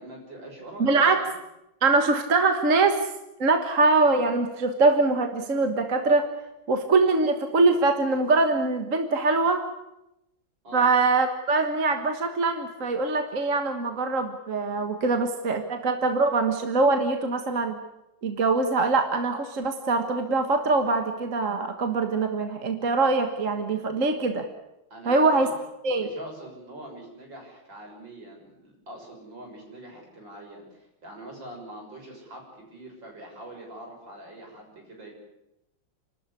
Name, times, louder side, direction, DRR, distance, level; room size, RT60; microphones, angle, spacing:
voice 1, 0.0-1.3 10.6-10.9 24.9-25.5 25.9-35.1, right 1 dB, 70° right, 0 dB, 7.3 m, -43 dB
voice 2, 0.8-1.2 1.8-3.1 3.4-6.3 6.7-9.6 10.7-17.8 18.2-24.5 25.1-25.5 25.8-26.1, right 3 dB, 40° right, 6 dB, 1.8 m, -23 dB
28.5 x 13.0 x 9.8 m, 0.90 s
omnidirectional pair, 2.1 m